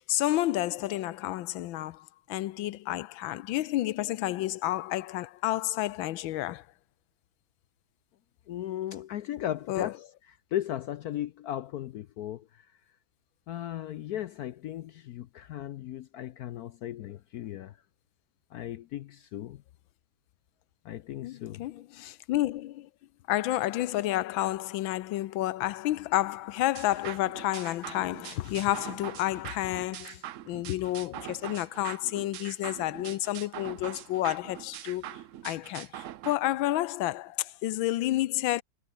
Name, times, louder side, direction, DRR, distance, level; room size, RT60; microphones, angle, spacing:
voice 1, 0.0-6.6 9.7-9.9 21.2-22.9 23.3-35.1 35.4-38.6, left 15 dB, 85° left, 1.5 m, -30 dB
voice 2, 8.5-9.9 10.5-12.7 13.5-17.8 18.5-19.6 20.8-21.7, left 12 dB, 70° left, 0.9 m, -36 dB
sound 1, 26.7-36.3, right 12 dB, 75° right, 0.7 m, -43 dB
omnidirectional pair, 2.1 m